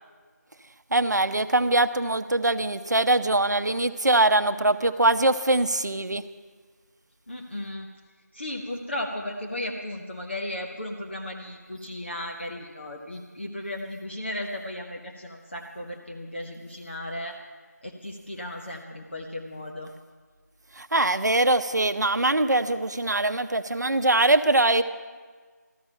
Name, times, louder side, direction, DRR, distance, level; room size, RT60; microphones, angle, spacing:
voice 1, 0.9-6.2 20.8-24.8, right 2 dB, 75° right, 9 dB, 0.7 m, -22 dB
voice 2, 7.3-7.9 8.3-17.4 17.8-19.9, left 1 dB, 40° left, 1 dB, 1.0 m, -35 dB
13.5 x 13.0 x 5.7 m, 1.5 s
figure-of-eight pair, 175°, 9 cm